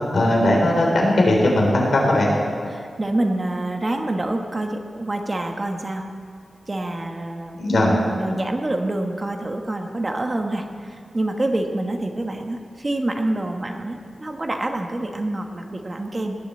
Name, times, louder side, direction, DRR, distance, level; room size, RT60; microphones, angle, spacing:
voice 1, 0.1-2.3 7.6-8.0, left 1 dB, 75° left, -1 dB, 3.8 m, -18 dB
voice 2, 2.7-6.1 6.7-7.6 8.1-16.3, right 1 dB, 30° right, 4 dB, 1.3 m, -26 dB
19.0 x 7.8 x 7.7 m, 2.2 s
wide cardioid pair, 95°, 0 cm